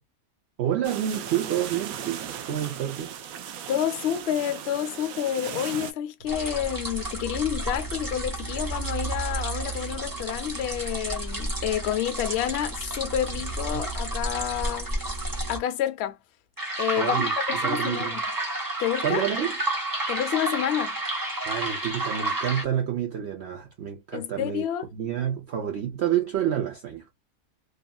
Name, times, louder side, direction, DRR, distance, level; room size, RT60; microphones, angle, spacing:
voice 1, 0.6-3.1 13.7-13.9 17.0-18.2 19.0-19.6 21.4-24.6 24.9-27.0, right 10 dB, 55° right, 0.8 m, -29 dB
sound 1, 0.8-5.9, right 9 dB, 85° right, 1.1 m, -37 dB
voice 2, 3.7-14.9 15.5-16.2 16.8-18.2 18.8-19.2 20.1-21.0 24.1-24.9, left 11 dB, 65° left, 0.7 m, -29 dB
sound 2, 6.3-15.6 16.6-22.6, right 2 dB, 20° right, 0.7 m, -31 dB
2.9 x 2.4 x 2.2 m
omnidirectional pair, 1.5 m